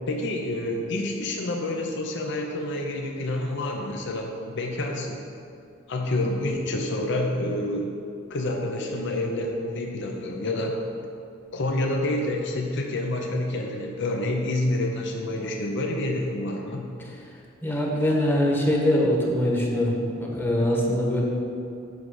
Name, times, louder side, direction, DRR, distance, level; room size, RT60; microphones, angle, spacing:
voice 1, 0.0-5.2 5.9-7.9 8.3-10.8 11.5-16.9, left 1 dB, 65° left, 1 dB, 0.7 m, -28 dB
voice 2, 17.6-21.2, left 1 dB, 10° left, -2 dB, 1.1 m, -23 dB
8.3 x 5.3 x 4.9 m, 2.6 s
head